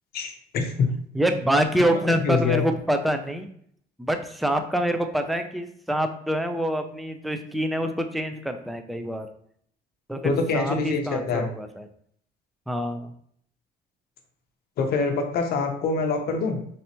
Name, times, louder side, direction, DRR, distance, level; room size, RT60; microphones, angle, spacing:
voice 1, 0.1-0.9 2.1-2.6 10.2-11.5 14.8-16.6, left 4 dB, 65° left, 4 dB, 0.7 m, -25 dB
voice 2, 1.1-3.5 4.0-9.3 10.1-11.9 12.7-13.1, right 1 dB, ahead, 6 dB, 0.3 m, -26 dB
3.3 x 2.8 x 2.8 m, 0.65 s
cardioid pair, 110°, 17 cm